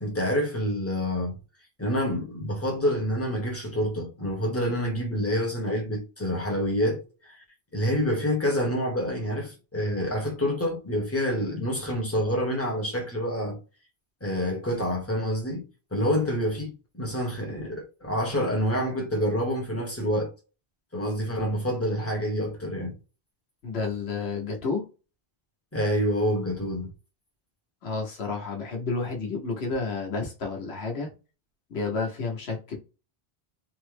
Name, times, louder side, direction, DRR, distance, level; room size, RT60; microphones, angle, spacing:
voice 1, 0.0-1.4 1.8-7.4 7.7-13.6 14.2-20.3 20.9-23.0 25.7-26.9, equal, 15° left, 0.9 m, -27 dB
voice 2, 23.6-24.8 27.8-31.1 31.7-32.8, left 4 dB, 80° left, 1.2 m, -30 dB
3.6 x 2.0 x 3.2 m
omnidirectional pair, 1.0 m